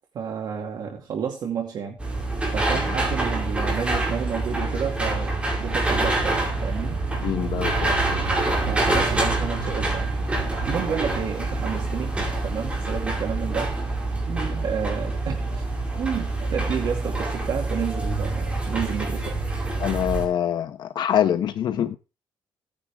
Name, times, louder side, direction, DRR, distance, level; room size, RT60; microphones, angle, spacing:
voice 1, 0.1-2.0 2.4-7.0 7.5-7.6 8.7-10.0 10.7-12.1 12.4-13.8 14.2-15.6 16.0-19.4, right 7 dB, 55° right, 2.4 m, -30 dB
sound 1, 2.0-20.3, right 2 dB, 15° right, 5.0 m, -26 dB
Bicycle / Mechanisms, 5.8-12.0, right 10 dB, 90° right, 1.3 m, -37 dB
voice 2, 7.2-7.9 19.8-22.0, left 10 dB, 60° left, 0.9 m, -24 dB
16.5 x 9.9 x 3.6 m
cardioid pair, 155°, 9 cm